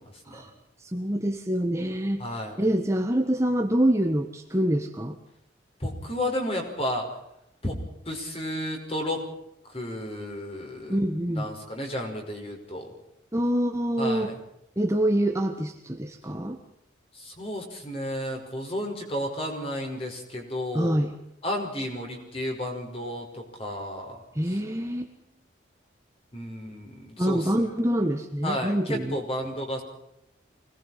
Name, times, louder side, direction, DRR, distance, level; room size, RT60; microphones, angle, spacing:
voice 1, 0.8-5.2 10.9-11.5 13.3-14.3 14.8-16.6 20.7-21.1 24.3-25.1 27.2-29.2, right 1 dB, 15° right, 4 dB, 1.4 m, -26 dB
voice 2, 2.2-2.5 5.8-7.1 7.6-7.8 8.1-9.2 9.7-11.0 11.3-12.9 14.0-14.4 17.1-21.0 21.4-24.2 26.3-27.5 28.4-29.8, left 1 dB, 30° left, 2 dB, 5.4 m, -32 dB
25.0 x 19.5 x 5.7 m, 0.81 s
head